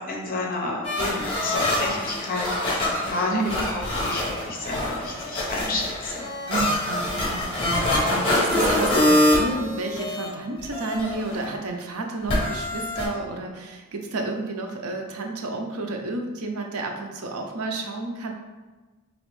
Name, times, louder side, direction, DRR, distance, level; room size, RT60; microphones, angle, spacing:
voice 1, 0.1-6.3, left 2 dB, 40° left, -1 dB, 0.7 m, -30 dB
sound 1, 0.8-10.3 10.6-11.4 12.3-13.1, left 1 dB, 25° left, 1.1 m, -25 dB
voice 2, 3.3-3.7 6.5-18.3, right 3 dB, 75° right, 3 dB, 0.5 m, -31 dB
4.2 x 3.0 x 3.1 m, 1.2 s
head